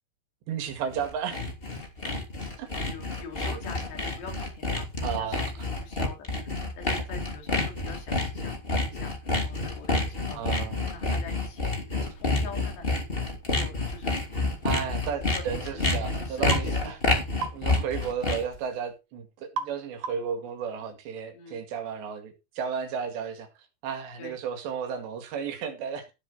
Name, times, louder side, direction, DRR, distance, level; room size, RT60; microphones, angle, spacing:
voice 1, 0.5-1.5 2.6-2.7 5.0-5.5 10.3-11.0 14.6-17.0 17.5-23.5 23.8-26.1, right 7 dB, 75° right, 4.3 m, -33 dB
Sawing, 0.7-18.6, left 2 dB, 15° left, 2.0 m, -29 dB
voice 2, 2.9-5.3 5.8-10.4 10.8-11.7 12.2-13.0 13.5-14.4 15.3-17.0 21.4-21.6 24.2-24.4, left 5 dB, 70° left, 5.4 m, -45 dB
sound 1, 16.5-16.7 17.4-17.6 19.6-19.8 20.0-20.4, right 6 dB, 55° right, 2.2 m, -33 dB
14.5 x 7.5 x 4.3 m
omnidirectional pair, 5.1 m